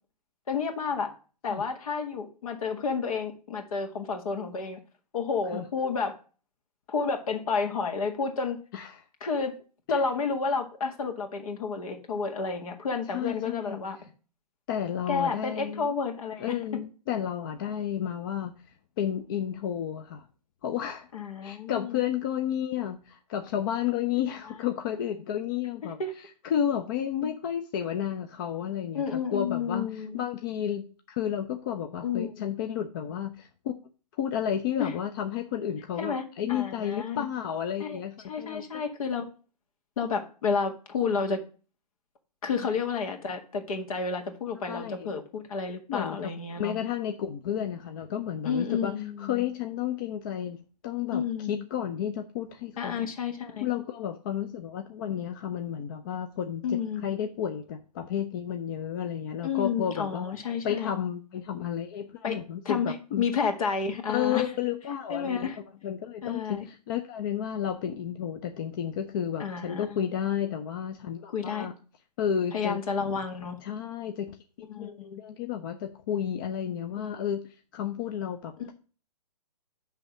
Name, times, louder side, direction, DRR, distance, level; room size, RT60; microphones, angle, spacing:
voice 1, 0.5-1.1 1.4-4.8 5.1-6.1 6.9-8.6 9.2-9.5 9.9-14.1 15.1-16.6 21.1-22.0 25.8-26.1 28.9-30.2 32.0-32.4 34.8-34.9 36.0-36.2 36.5-37.3 37.8-38.0 38.3-39.3 40.0-41.4 42.4-46.8 48.4-49.4 51.1-51.7 52.8-53.7 56.6-57.0 59.4-60.9 62.2-62.4 62.7-64.5 65.1-65.6 66.2-66.7 69.4-70.0 71.3-71.7 72.5-73.6 74.7-75.2 77.0-77.2 78.6-78.7, left 5 dB, 55° left, 4 dB, 1.9 m, -31 dB
voice 2, 13.1-13.8 14.7-15.9 16.4-18.5 19.0-20.3 20.6-21.1 21.4-26.0 26.4-29.0 29.3-33.7 34.2-38.6 42.6-42.7 44.6-45.1 45.9-46.3 46.6-50.6 50.8-53.1 53.6-60.3 60.6-63.3 64.1-65.5 65.8-71.7 72.2-72.8 73.6-74.3 74.6-78.7, left 9 dB, 30° left, 6 dB, 0.6 m, -32 dB
10.0 x 3.5 x 6.0 m, 0.37 s
figure-of-eight pair, 135°, 21 cm